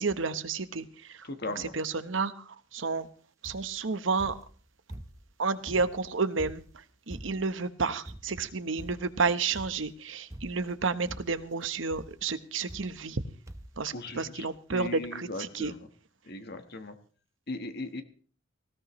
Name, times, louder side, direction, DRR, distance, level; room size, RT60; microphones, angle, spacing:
voice 1, 0.0-1.3 1.6-3.1 3.4-4.4 5.4-6.6 7.1-13.2 13.8-15.7, right 4 dB, 70° right, 12 dB, 1.0 m, -31 dB
voice 2, 1.2-1.8 13.9-15.9 16.2-16.9 17.5-18.0, left 2 dB, 55° left, 8 dB, 1.3 m, -38 dB
sound 1, 3.4-3.8 4.2-5.3 5.7-7.6 8.1-8.5 8.8-9.2 9.6-10.0 10.3-10.8 11.1-11.5 11.9-12.2 12.7-13.2 13.5-13.8 14.5-14.6 14.8-14.9, right 1 dB, 15° right, 0.7 m, -46 dB
19.0 x 17.0 x 3.1 m, 0.41 s
head